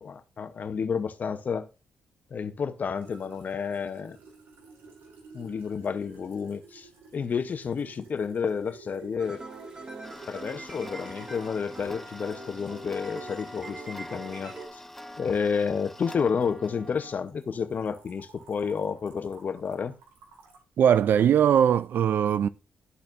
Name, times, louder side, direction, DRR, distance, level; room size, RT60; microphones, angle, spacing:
voice 1, 0.0-1.7 2.3-4.2 5.3-9.4 10.3-14.5 15.2-19.9, left 6 dB, 50° left, 0.8 m, -30 dB
sound 1, 2.9-20.6, right 4 dB, 85° right, 1.9 m, -53 dB
sound 2, 9.2-14.7, right 2 dB, 25° right, 2.7 m, -43 dB
Tick-tock, 10.0-17.2, left 1 dB, 5° left, 0.5 m, -45 dB
voice 2, 20.8-22.5, right 9 dB, 65° right, 0.4 m, -20 dB
12.0 x 4.2 x 2.6 m
cardioid pair, 70°, 4 cm